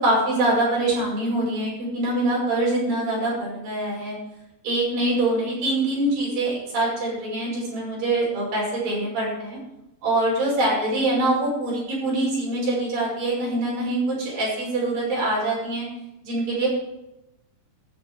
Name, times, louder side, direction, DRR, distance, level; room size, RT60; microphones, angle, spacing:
voice 1, 0.0-4.2 4.6-9.6 10.0-15.9 16.2-16.7, right 2 dB, 50° right, -4 dB, 7.2 m, -24 dB
17.0 x 7.0 x 4.8 m, 0.90 s
omnidirectional pair, 5.2 m